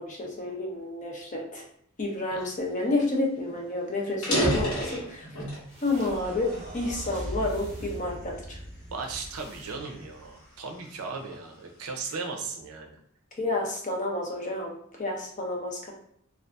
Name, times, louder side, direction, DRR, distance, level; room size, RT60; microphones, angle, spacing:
voice 1, 0.0-1.6 2.0-5.3 5.8-8.6 12.1-12.2 13.4-15.9, left 2 dB, 35° left, 0 dB, 0.5 m, -30 dB
sound 1, 3.4-3.6 4.1-5.7 6.2-7.5 8.1-8.4 9.0-11.0, equal, 70° left, 1.1 m, -32 dB
sound 2, 4.4-10.7, right 1 dB, 15° right, 0.9 m, -39 dB
sound 3, 5.9-10.3, right 1 dB, 35° right, 0.6 m, -40 dB
voice 2, 8.9-12.9, right 4 dB, 85° right, 2 dB, 0.5 m, -37 dB
2.6 x 2.3 x 2.3 m, 0.69 s
head